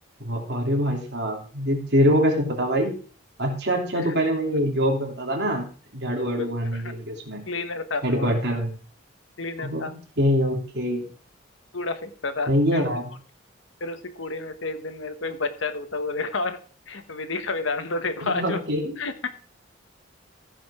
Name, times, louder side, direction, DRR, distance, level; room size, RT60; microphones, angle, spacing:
voice 1, 0.2-2.9 3.4-5.7 5.9-7.4 8.0-8.7 9.6-9.9 10.2-11.1 12.5-13.1 18.2-19.0, equal, 55° right, 1 dB, 2.9 m, -24 dB
voice 2, 6.4-6.8 7.5-8.3 9.4-9.9 11.7-12.9 13.8-16.6 16.9-18.6 19.0-19.3, left 3 dB, 80° left, 9 dB, 1.3 m, -30 dB
14.5 x 5.2 x 4.9 m, 0.40 s
head